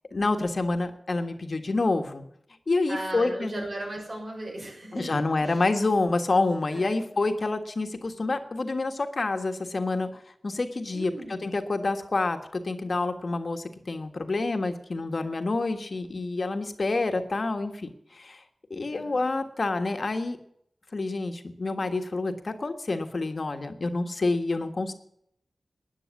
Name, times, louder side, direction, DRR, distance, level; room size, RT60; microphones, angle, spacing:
voice 1, 0.1-2.2 2.7-3.6 4.9-18.4 18.7-20.4 20.9-24.9, left 3 dB, 60° left, 7 dB, 1.4 m, -28 dB
voice 2, 2.9-5.6 6.7-6.9 10.9-11.5 18.9-19.2, right 1 dB, 60° right, 0 dB, 6.4 m, -37 dB
13.0 x 9.6 x 7.2 m, 0.71 s
wide cardioid pair, 60°, 0 cm